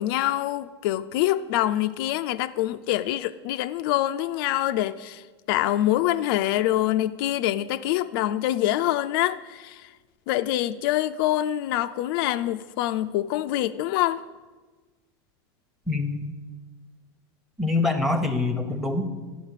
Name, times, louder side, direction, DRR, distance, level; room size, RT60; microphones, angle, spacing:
voice 1, 0.0-5.2 5.5-9.4 10.3-14.2, left 14 dB, 65° left, 0.4 m, -25 dB
voice 2, 15.9-16.3 17.6-19.0, left 3 dB, ahead, 0.9 m, -25 dB
11.0 x 5.5 x 6.5 m
supercardioid pair, 125°, 13 cm